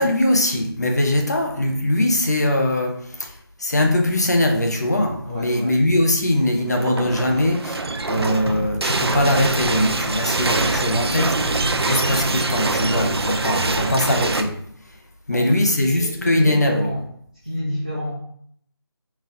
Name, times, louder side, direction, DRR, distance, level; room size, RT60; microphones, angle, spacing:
voice 1, 0.0-14.6 15.3-16.9, left 1 dB, 40° left, 3 dB, 0.7 m, -21 dB
voice 2, 5.2-5.7 15.3-17.0 17.4-18.1, left 1 dB, 20° right, -7 dB, 0.4 m, -29 dB
sound 1, 6.6-14.4, right 2 dB, 75° right, 0.6 m, -24 dB
4.0 x 2.4 x 4.0 m, 0.65 s
figure-of-eight pair, 180°, 13 cm